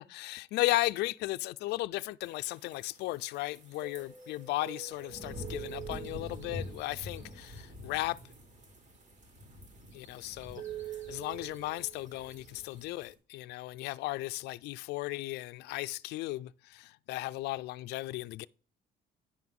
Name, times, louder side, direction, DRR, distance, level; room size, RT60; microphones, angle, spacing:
voice 1, 0.0-8.2 9.9-10.6 11.1-18.5, left 18 dB, 80° left, 0.4 m, -35 dB
sound 1, 2.2-13.1, right 3 dB, 45° right, 2.3 m, -45 dB
10.0 x 5.9 x 3.6 m
cardioid pair, 110°, 17 cm